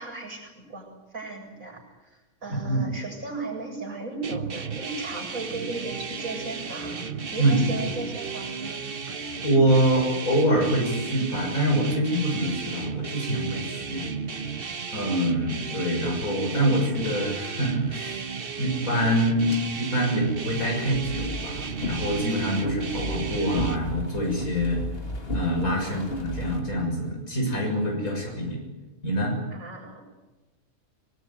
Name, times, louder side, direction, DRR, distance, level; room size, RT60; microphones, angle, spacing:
voice 1, 0.0-8.9 25.8-26.4 29.5-30.0, right 3 dB, 70° right, 0 dB, 7.9 m, -36 dB
voice 2, 2.5-2.9 7.4-7.9 9.4-14.1 14.9-18.3 18.6-24.8 25.3-28.6 29.0-29.4, right 1 dB, 75° left, 1 dB, 7.2 m, -25 dB
sound 1, 4.2-23.8, right 5 dB, 45° right, 1.3 m, -34 dB
sound 2, 20.5-26.6, equal, 45° left, 2.8 m, -34 dB
24.5 x 20.5 x 9.3 m, 1.1 s
omnidirectional pair, 1.5 m